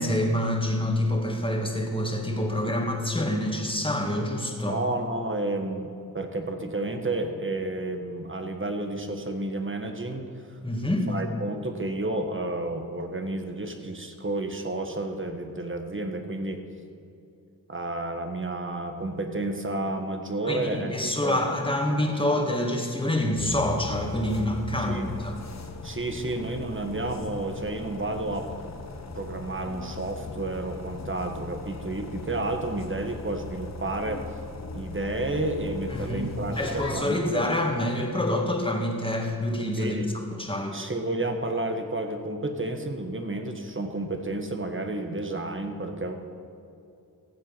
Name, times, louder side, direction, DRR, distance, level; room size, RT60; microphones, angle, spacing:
voice 1, 0.0-4.8 10.6-11.1 20.5-25.4 35.9-36.3 36.6-40.0 40.3-40.8, left 1 dB, 15° left, 1 dB, 2.5 m, -27 dB
voice 2, 4.6-10.6 11.1-16.6 17.7-21.4 24.8-25.2 25.8-28.5 29.1-34.2 34.7-37.4 39.8-40.1 40.7-46.1, right 2 dB, 30° right, 5 dB, 1.6 m, -31 dB
sound 1, 23.4-37.0, left 3 dB, 45° left, 1.2 m, -39 dB
16.0 x 7.5 x 5.9 m, 2.6 s
cardioid pair, 40°, 38 cm